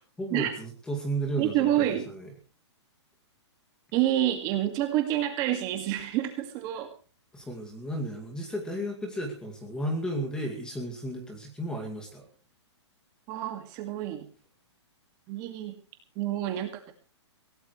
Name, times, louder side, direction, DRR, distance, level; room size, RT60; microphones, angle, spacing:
voice 1, 0.0-2.3 7.3-12.3, right 1 dB, 5° left, 1 dB, 2.3 m, -34 dB
voice 2, 1.4-2.1 3.9-6.9 13.3-14.3 15.3-15.8 16.2-16.9, right 13 dB, 25° right, 5 dB, 2.1 m, -28 dB
22.0 x 17.0 x 3.2 m, 0.36 s
hypercardioid pair, 165°, 15 cm